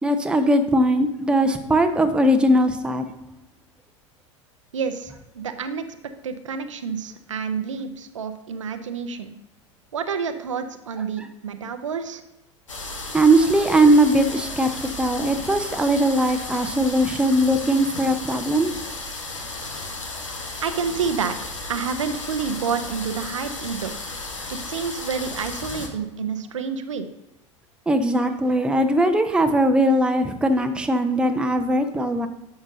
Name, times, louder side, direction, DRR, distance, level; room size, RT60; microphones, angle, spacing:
voice 1, 0.0-3.0 13.1-18.7 27.9-32.3, right 1 dB, 5° right, 6 dB, 0.7 m, -20 dB
voice 2, 4.7-5.9 6.2-9.3 9.9-12.2 20.6-21.4 21.7-23.9 24.5-27.1, right 6 dB, 75° right, 8 dB, 0.7 m, -29 dB
sound 1, 12.7-25.9, left 2 dB, 75° left, 1.2 m, -34 dB
10.5 x 7.0 x 2.7 m, 0.94 s
figure-of-eight pair, 80°, 16 cm